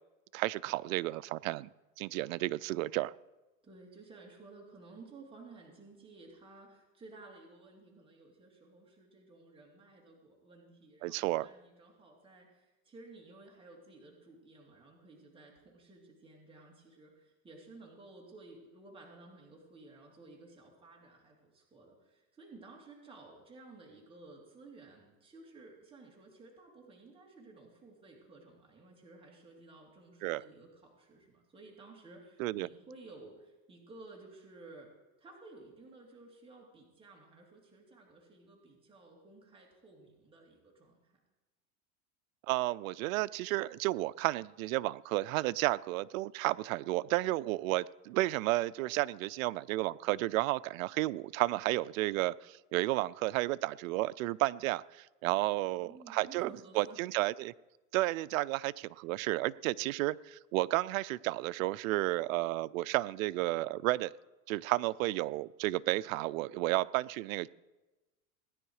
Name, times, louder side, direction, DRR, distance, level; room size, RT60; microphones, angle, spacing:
voice 1, 0.3-1.7 2.0-3.1 11.0-11.5 30.2-30.4 32.4-32.7 42.5-57.5 57.9-64.1 64.5-67.5, right 18 dB, 75° right, 18 dB, 0.6 m, -32 dB
voice 2, 3.6-34.9 35.2-41.1 55.7-57.1, right 3 dB, 15° right, -2 dB, 3.0 m, -55 dB
18.0 x 10.0 x 4.8 m, 1.1 s
supercardioid pair, 130°, 41 cm